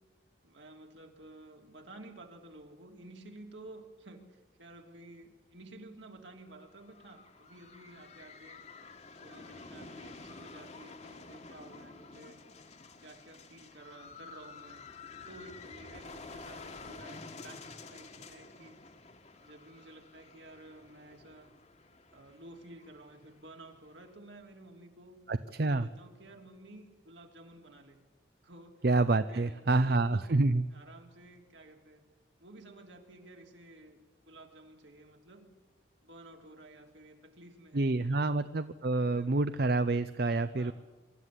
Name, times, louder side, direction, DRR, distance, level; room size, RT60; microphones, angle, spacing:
voice 1, 0.4-8.6 9.2-12.4 13.0-14.8 15.3-17.6 17.9-18.8 19.4-21.5 22.1-25.2 25.6-28.0 28.4-28.8 29.2-30.3 30.7-32.0 32.4-35.5 36.0-38.4 38.9-39.3 40.5-40.7, right 2 dB, 75° right, 3 dB, 3.1 m, -52 dB
sound 1, 6.5-24.2, left 3 dB, 35° left, 1.4 m, -50 dB
voice 2, 25.3-25.9 28.8-30.7 37.7-40.7, right 2 dB, 55° right, 13 dB, 0.6 m, -28 dB
24.0 x 13.0 x 9.8 m, 1.3 s
head